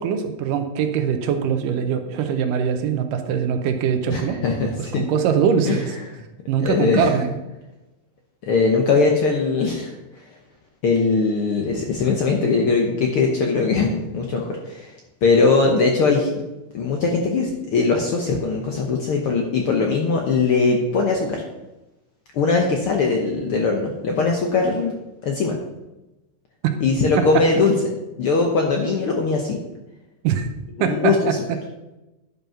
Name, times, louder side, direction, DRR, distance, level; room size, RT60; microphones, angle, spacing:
voice 1, 0.0-4.4 4.8-6.0 6.5-7.4 26.6-26.8 27.3-27.4 30.2-30.5 30.8-31.4, right 7 dB, 80° right, 7 dB, 2.4 m, -22 dB
voice 2, 4.1-5.0 5.6-5.8 6.6-7.1 8.5-9.9 10.8-14.9 15.2-16.3 16.7-21.4 22.3-25.0 25.2-25.6 26.8-27.7 28.2-29.6 30.8-31.1, left 4 dB, 80° left, 1 dB, 1.2 m, -20 dB
10.5 x 5.4 x 5.6 m, 1.0 s
omnidirectional pair, 3.9 m